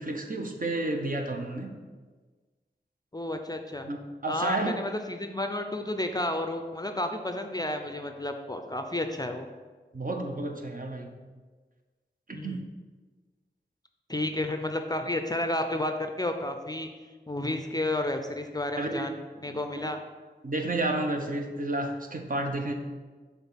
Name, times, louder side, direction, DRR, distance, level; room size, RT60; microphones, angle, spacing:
voice 1, 0.0-1.8 3.8-4.0 4.2-4.8 9.9-11.1 12.4-12.6 18.8-19.1 19.5-19.9 20.4-22.7, right 2 dB, 50° right, 3 dB, 0.8 m, -31 dB
voice 2, 3.1-3.9 4.3-9.5 12.3-12.6 14.1-16.9 17.3-20.0, left 1 dB, 20° left, 6 dB, 0.4 m, -31 dB
6.1 x 3.6 x 5.6 m, 1.4 s
wide cardioid pair, 70°, 19 cm